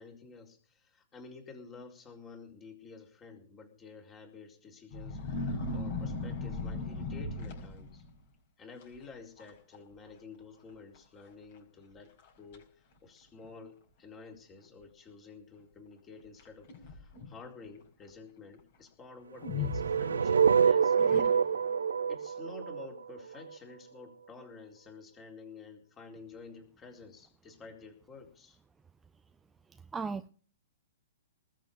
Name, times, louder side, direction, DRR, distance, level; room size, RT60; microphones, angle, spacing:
voice 1, 0.0-8.1 8.6-21.0 22.1-28.6, left 4 dB, 20° left, 2 dB, 4.2 m, -51 dB
sound 1, 4.9-8.2 8.8-9.1 9.4-9.8 10.1-10.2 11.0-11.1 11.6-11.7 12.2-12.6 13.4-13.5 16.4-17.4 19.4-20.5 21.0-21.7, left 3 dB, 50° left, 5.3 m, -37 dB
sound 2, 19.5-23.6, right 6 dB, 75° right, 0.6 m, -26 dB
voice 2, 29.7-30.3, right 4 dB, 10° right, 10 dB, 0.6 m, -37 dB
20.0 x 7.2 x 6.9 m, 0.43 s
figure-of-eight pair, 115°, 0 cm